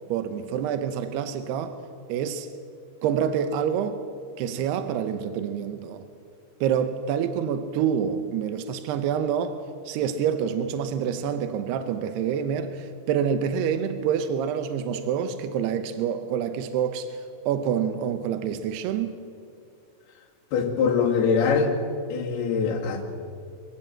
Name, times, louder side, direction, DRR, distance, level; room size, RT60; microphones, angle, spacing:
voice 1, 0.1-1.8 2.1-2.5 3.0-4.0 4.4-6.0 6.6-9.6 9.9-17.2 17.5-19.2, right 8 dB, 85° right, 3.0 m, -27 dB
voice 2, 20.5-21.7 22.1-23.0, left 5 dB, 75° left, 4.2 m, -23 dB
25.5 x 15.5 x 7.8 m
omnidirectional pair, 4.6 m